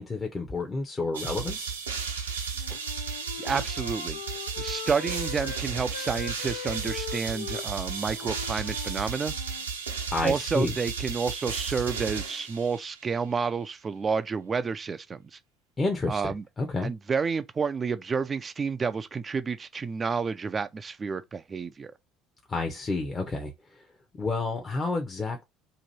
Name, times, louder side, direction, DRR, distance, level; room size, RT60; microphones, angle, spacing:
voice 1, 0.0-1.7 10.1-10.7 15.8-16.9 22.5-23.8 24.2-25.4, left 3 dB, 25° left, 0.7 m, -30 dB
sound 1, 1.1-13.0, right 6 dB, 85° right, 0.7 m, -34 dB
Wind instrument woodwind instrument, 2.5-5.6 5.9-9.7, left 10 dB, 75° left, 0.3 m, -41 dB
voice 2, 3.4-4.2 4.6-9.3 10.2-15.4 16.1-16.4 16.8-21.9, right 5 dB, 30° right, 0.3 m, -30 dB
2.9 x 2.5 x 4.2 m
figure-of-eight pair, 60°, 0 cm